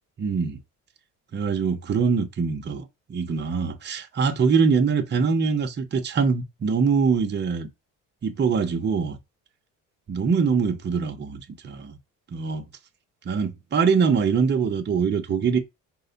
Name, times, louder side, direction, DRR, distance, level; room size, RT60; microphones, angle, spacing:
voice 1, 0.2-0.6 1.3-7.7 8.2-9.2 10.1-12.0 12.3-12.6 13.2-15.6, right 5 dB, 30° right, 0.7 m, -23 dB
4.7 x 2.1 x 3.9 m
cardioid pair, 105°, 34 cm